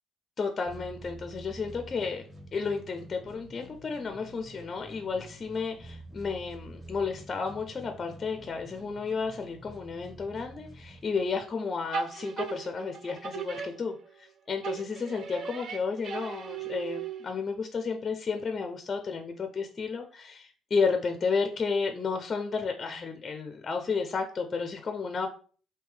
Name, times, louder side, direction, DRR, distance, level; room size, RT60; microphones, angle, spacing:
voice 1, 0.4-25.3, left 5 dB, 35° left, 6 dB, 0.4 m, -32 dB
sound 1, 0.7-11.6, right 1 dB, 20° right, 1.6 m, -48 dB
sound 2, 11.9-14.3 14.6-17.5, right 6 dB, 60° right, 0.4 m, -37 dB
3.6 x 2.7 x 3.2 m, 0.42 s
cardioid pair, 100°, 0 cm